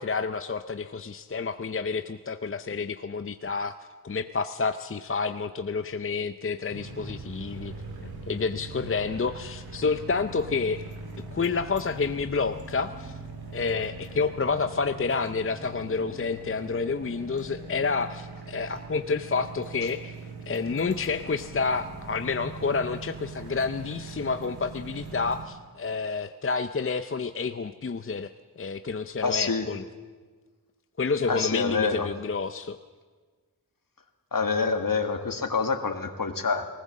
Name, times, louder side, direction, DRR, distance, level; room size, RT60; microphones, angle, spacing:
voice 1, 0.0-3.8 4.0-7.7 8.0-10.8 11.3-13.2 13.5-20.2 20.5-29.8 31.0-32.8, left 4 dB, 35° left, 10 dB, 0.6 m, -29 dB
sound 1, 6.7-25.5, right 3 dB, 80° right, 2.7 m, -41 dB
voice 2, 29.2-29.7 31.3-32.1 34.3-36.7, left 4 dB, 65° left, 7 dB, 1.8 m, -26 dB
20.0 x 19.0 x 7.4 m, 1.4 s
wide cardioid pair, 75°, 37 cm